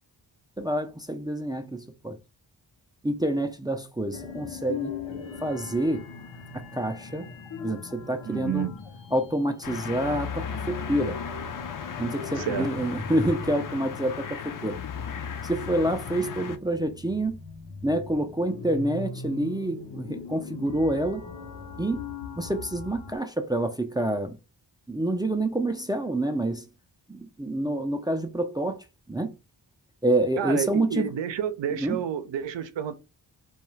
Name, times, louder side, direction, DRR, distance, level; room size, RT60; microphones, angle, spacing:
voice 1, 0.6-2.2 3.0-4.9 5.4-6.1 6.5-7.3 7.6-8.7 9.1-11.2 12.0-14.8 15.4-17.4 17.8-21.2 21.8-22.0 22.4-24.4 24.9-26.7 27.1-29.3 30.0-31.1 31.7-32.0, right 1 dB, 10° right, 0.3 m, -27 dB
sound 1, 4.1-23.2, left 5 dB, 80° left, 0.8 m, -39 dB
voice 2, 8.3-8.8 12.4-12.7 30.4-32.9, right 9 dB, 75° right, 0.6 m, -30 dB
sound 2, 9.6-16.6, left 8 dB, 50° left, 0.5 m, -37 dB
2.3 x 2.3 x 3.1 m
cardioid pair, 55°, 44 cm